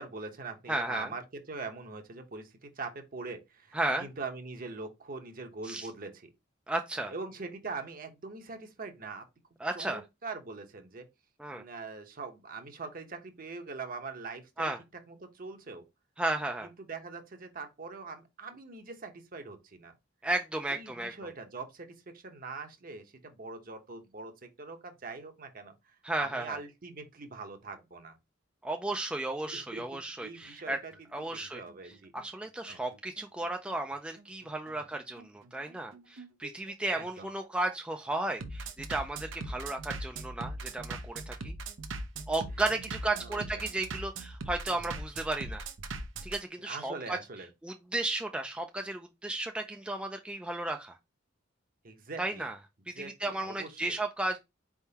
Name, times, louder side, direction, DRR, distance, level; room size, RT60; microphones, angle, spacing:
voice 1, 0.0-6.3 7.1-9.3 9.7-11.1 11.5-14.7 15.1-15.8 16.6-19.9 20.7-28.2 29.5-29.8 30.2-30.9 31.3-32.1 32.7-32.8 34.8-34.9 36.9-37.3 39.5-39.6 43.0-43.7 44.7-44.9 46.6-47.5 51.8-52.5 52.9-54.0, right 4 dB, 50° right, 0.9 m, -43 dB
voice 2, 0.7-1.1 3.7-4.1 5.6-5.9 6.7-7.1 9.6-10.0 11.4-11.6 14.6-14.8 16.2-16.7 20.2-21.1 26.0-26.6 28.6-30.8 31.1-31.6 32.1-41.5 42.3-45.7 46.2-47.2 47.6-50.9 52.2-52.6 53.0-54.4, right 2 dB, 5° right, 0.3 m, -34 dB
Bass drum, 30.4-46.4, right 3 dB, 85° right, 0.7 m, -41 dB
4.5 x 3.6 x 2.8 m
head